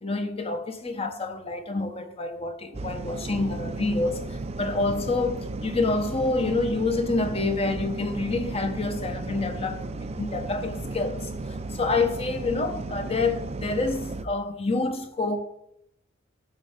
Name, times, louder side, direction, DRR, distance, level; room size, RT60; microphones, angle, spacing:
voice 1, 0.0-11.3 11.7-15.4, left 3 dB, 30° left, 0.9 m, -27 dB
sound 1, 2.7-14.2, right 2 dB, 30° right, 0.5 m, -34 dB
13.0 x 5.5 x 5.1 m
head